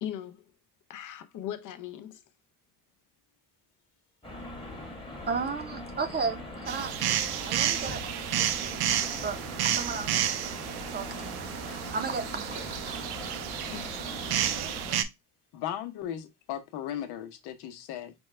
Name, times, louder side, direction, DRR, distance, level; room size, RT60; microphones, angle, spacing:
voice 1, 0.0-0.4 0.9-2.2 13.7-14.0, left 10 dB, 55° left, 0.7 m, -39 dB
sound 1, 4.2-15.0, left 1 dB, 15° left, 1.1 m, -41 dB
voice 2, 5.3-6.9 7.4-8.9 9.2-9.4 9.6-12.9, right 5 dB, 25° right, 0.6 m, -35 dB
sound 2, 6.7-15.0, right 11 dB, 80° right, 0.6 m, -31 dB
voice 3, 15.5-18.1, left 10 dB, 90° left, 0.9 m, -36 dB
5.2 x 2.3 x 3.2 m
cardioid pair, 145°, 38 cm